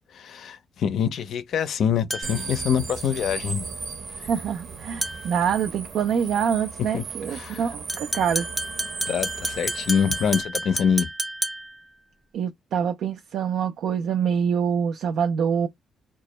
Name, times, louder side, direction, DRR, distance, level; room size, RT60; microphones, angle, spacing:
voice 1, 0.1-3.7 6.9-7.0 7.3-7.7 9.1-11.1, left 7 dB, 65° left, 0.4 m, -25 dB
sound 1, 2.1-2.5 5.0-5.4 7.9-11.8, right 1 dB, 10° right, 0.5 m, -30 dB
sound 2, 2.2-10.4, right 5 dB, 50° right, 0.8 m, -36 dB
voice 2, 4.3-8.5 12.3-15.7, right 7 dB, 75° right, 0.3 m, -25 dB
2.1 x 2.0 x 2.9 m
cardioid pair, 90°, 0 cm